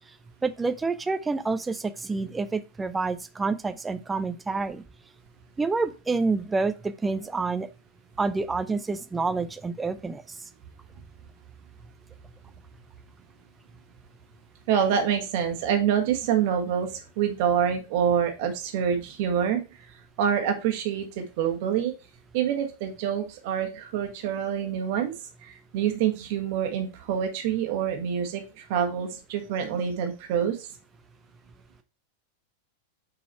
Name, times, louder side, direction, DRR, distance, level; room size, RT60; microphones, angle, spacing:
voice 1, 0.4-4.8 5.6-7.7 8.2-10.2, right 3 dB, 10° right, 12 dB, 0.5 m, -28 dB
voice 2, 14.7-19.6 20.2-21.9 22.3-25.1 25.4-30.7, right 8 dB, 50° right, 4 dB, 1.3 m, -26 dB
5.9 x 3.9 x 4.3 m, 0.30 s
figure-of-eight pair, 90°, 0 cm